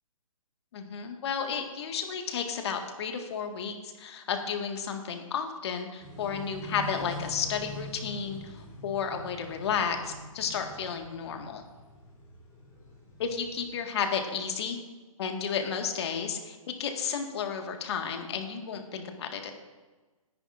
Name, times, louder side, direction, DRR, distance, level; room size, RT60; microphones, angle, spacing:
voice 1, 0.7-11.6 13.2-14.8 15.2-19.5, left 6 dB, 45° left, 4 dB, 1.7 m, -32 dB
sound 1, 6.0-13.7, equal, 15° left, 3.1 m, -44 dB
18.5 x 10.5 x 2.5 m, 1.3 s
hypercardioid pair, 150°, 18 cm